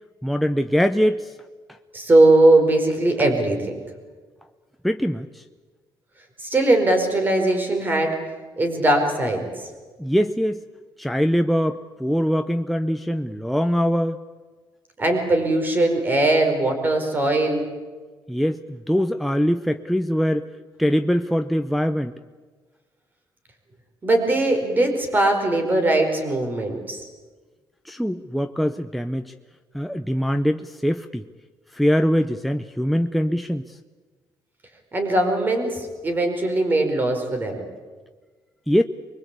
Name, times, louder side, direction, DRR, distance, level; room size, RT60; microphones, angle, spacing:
voice 1, 0.2-1.4 4.8-5.4 10.0-10.6 11.0-14.2 18.3-20.5 20.8-22.1 27.8-29.3 29.7-31.2 31.7-33.8 38.7-38.8, equal, ahead, 6 dB, 0.7 m, -22 dB
voice 2, 1.9-3.8 6.4-8.2 8.6-9.5 15.0-17.6 24.0-27.0 34.9-37.6, right 2 dB, 25° right, 5 dB, 4.8 m, -20 dB
25.0 x 22.5 x 8.4 m, 1.4 s
cardioid pair, 150°, 8 cm